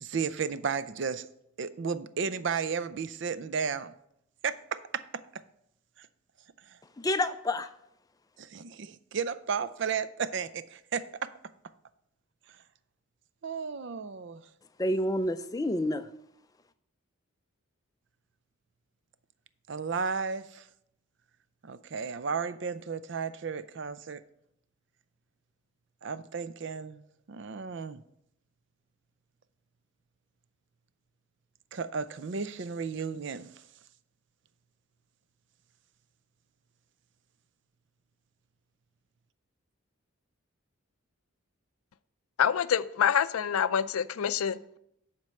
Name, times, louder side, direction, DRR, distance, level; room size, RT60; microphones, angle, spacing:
voice 1, 0.0-1.3 1.6-3.9 4.4-5.4 6.0-6.1 6.7-6.8 8.4-11.3 13.4-14.4 19.7-20.7 21.6-24.2 26.0-27.0 27.3-28.0 31.7-33.5, right 6 dB, 55° right, 0.4 m, -34 dB
voice 2, 7.0-7.7 14.8-16.1, left 1 dB, 15° left, 0.4 m, -28 dB
voice 3, 42.4-44.8, left 8 dB, 85° left, 0.4 m, -26 dB
10.5 x 4.5 x 6.3 m
head